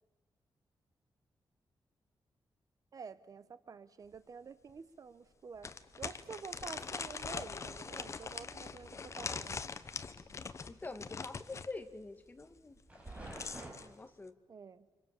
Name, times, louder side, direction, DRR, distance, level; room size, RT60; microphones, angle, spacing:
voice 1, 2.9-9.7 14.5-14.9, right 5 dB, 45° right, 14 dB, 1.0 m, -49 dB
sound 1, 4.1-4.2 4.7-4.8 5.6-11.7 12.9-13.9, left 5 dB, 35° left, 1.1 m, -42 dB
sound 2, 5.5-13.7, right 1 dB, 15° right, 5.5 m, -54 dB
voice 2, 10.7-12.8 13.8-14.3, left 3 dB, 20° left, 8 dB, 1.7 m, -46 dB
29.5 x 26.0 x 7.3 m, 1.1 s
wide cardioid pair, 170°, 8 cm